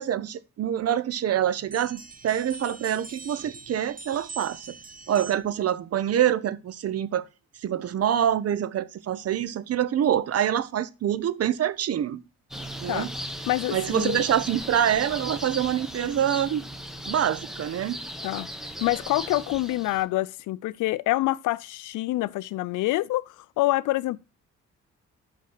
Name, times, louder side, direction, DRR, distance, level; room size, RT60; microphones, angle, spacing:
voice 1, 0.0-4.8 5.1-7.2 7.6-12.2 12.8-13.1 13.7-16.6 17.1-18.0, right 10 dB, 55° right, 0.7 m, -26 dB
sound 1, 1.7-5.6, right 3 dB, 30° right, 0.9 m, -43 dB
sound 2, 12.5-20.0, equal, ahead, 1.1 m, -37 dB
voice 2, 13.5-14.2 18.2-18.5 18.8-24.2, left 18 dB, 85° left, 0.5 m, -26 dB
6.0 x 5.6 x 6.1 m
cardioid pair, 90°, 30 cm